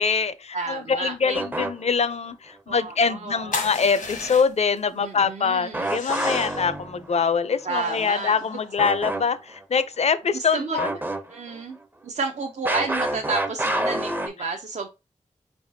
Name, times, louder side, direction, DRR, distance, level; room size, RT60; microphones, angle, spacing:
voice 1, 0.0-11.0, left 5 dB, 55° left, 0.4 m, -24 dB
voice 2, 0.5-1.4 2.7-3.6 4.9-6.0 7.6-8.3 10.3-10.8 11.3-11.8 12.0-14.9, right 4 dB, 60° right, 0.5 m, -31 dB
sound 1, 1.3-2.1 5.7-7.3 8.8-9.2 9.5-9.6 10.8-11.6 12.6-14.3, right 1 dB, 15° right, 0.5 m, -27 dB
sound 2, 3.5-4.8 5.8-6.7 7.6-9.3, left 3 dB, 90° left, 1.0 m, -35 dB
4.5 x 3.4 x 2.6 m
cardioid pair, 60°, 13 cm